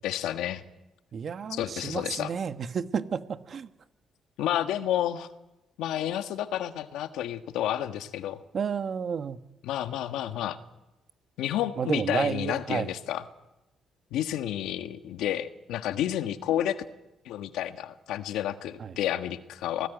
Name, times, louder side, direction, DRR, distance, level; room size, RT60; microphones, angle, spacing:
voice 1, 0.0-0.6 1.5-2.3 4.4-5.3 5.8-8.4 9.6-10.6 11.4-13.2 14.1-16.8 17.2-19.9, left 11 dB, 90° left, 9 dB, 1.5 m, -30 dB
voice 2, 1.1-3.7 8.5-9.4 11.8-12.9 18.8-19.0, right 6 dB, 50° right, 10 dB, 1.3 m, -31 dB
27.5 x 18.5 x 9.3 m, 0.99 s
cardioid pair, 90°, 0 cm